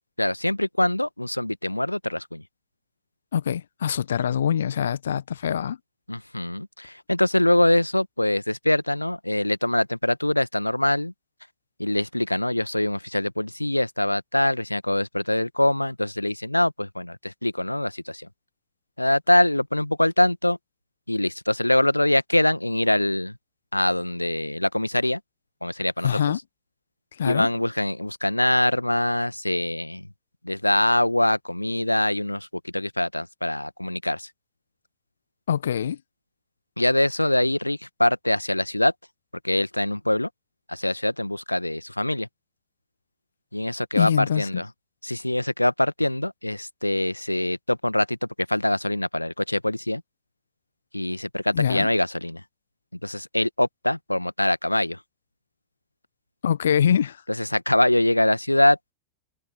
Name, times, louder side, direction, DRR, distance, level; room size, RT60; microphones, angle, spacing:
voice 1, 0.2-2.4 6.1-11.1 11.8-18.3 19.0-20.6 21.1-23.4 23.7-25.2 25.6-26.3 27.2-30.1 30.4-34.3 36.8-38.9 39.4-40.3 40.7-42.3 43.5-44.7 45.0-48.2 48.5-50.0 50.9-52.4 53.0-55.0 57.3-58.9, left 1 dB, 85° left, 1.6 m, -23 dB
voice 2, 3.3-5.8 26.0-26.4 27.2-27.5 35.5-36.0 43.9-44.6 51.5-51.9 56.4-57.2, left 8 dB, 65° left, 1.5 m, -24 dB
figure-of-eight pair, 90°, 0 cm